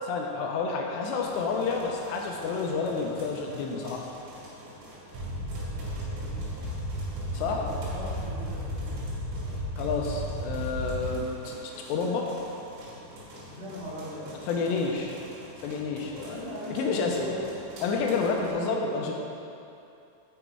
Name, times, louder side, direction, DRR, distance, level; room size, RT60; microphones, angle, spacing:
voice 1, 0.0-4.0 7.3-7.6 9.8-12.3 14.5-15.1 15.6-16.4 16.7-17.2 17.8-19.1, left 4 dB, 85° left, 1 dB, 2.7 m, -29 dB
sound 1, 1.2-18.5, equal, 80° right, 4.0 m, -47 dB
sound 2, 5.1-11.1, equal, 65° right, 2.2 m, -34 dB
voice 2, 5.7-6.7 7.4-9.0 13.5-14.3 16.2-17.5 18.2-19.1, equal, 45° right, -10 dB, 2.5 m, -39 dB
8.1 x 5.9 x 4.5 m, 2.7 s
omnidirectional pair, 5.1 m